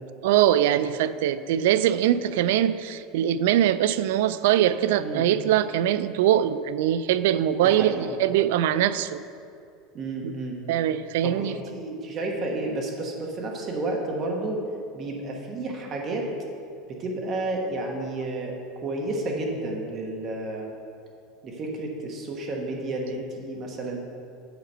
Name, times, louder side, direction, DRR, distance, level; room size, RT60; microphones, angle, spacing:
voice 1, 0.2-9.2 10.2-10.3 10.7-11.6, right 11 dB, 80° right, 14 dB, 0.3 m, -22 dB
voice 2, 4.9-5.3 7.6-8.2 9.9-10.6 11.2-14.6 14.9-16.3 16.9-20.7 21.4-24.0, right 2 dB, 30° right, 0 dB, 1.2 m, -31 dB
8.1 x 5.0 x 6.2 m, 2.4 s
supercardioid pair, 165°, 0 cm